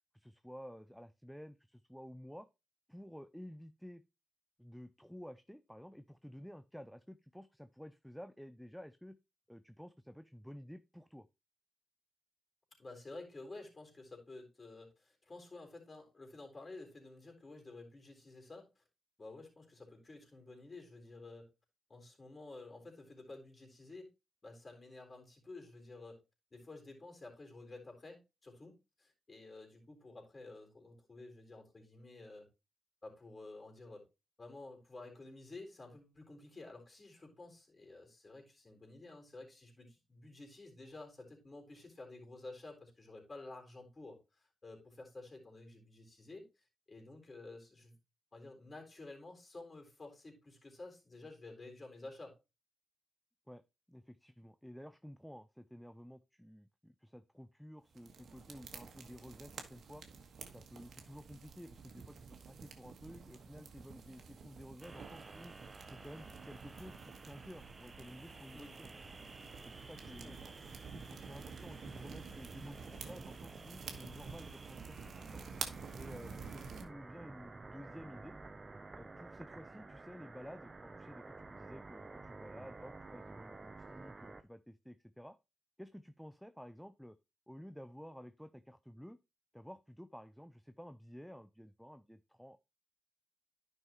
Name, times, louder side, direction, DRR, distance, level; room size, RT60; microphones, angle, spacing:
voice 1, 0.1-2.5 2.9-4.0 4.6-9.2 9.5-11.3 53.5-53.6 53.9-60.0 60.5-62.2 62.5-65.5 65.9-69.1 69.6-70.4 70.9-75.4 75.9-78.4 78.9-85.4 85.8-87.2 87.5-89.2 89.5-92.6, equal, ahead, 12 dB, 0.6 m, -52 dB
voice 2, 12.8-18.8 19.2-21.5 21.9-24.1 24.4-26.2 26.5-32.5 33.0-34.1 34.4-48.0 48.3-52.4 68.5-68.8 70.0-70.4, left 2 dB, 40° left, 2 dB, 3.9 m, -52 dB
sound 1, 57.9-76.8, right 5 dB, 70° right, 1.4 m, -50 dB
sound 2, 64.8-84.4, right 3 dB, 35° right, 0.8 m, -52 dB
11.0 x 5.6 x 3.0 m, 0.26 s
supercardioid pair, 45°, 0 cm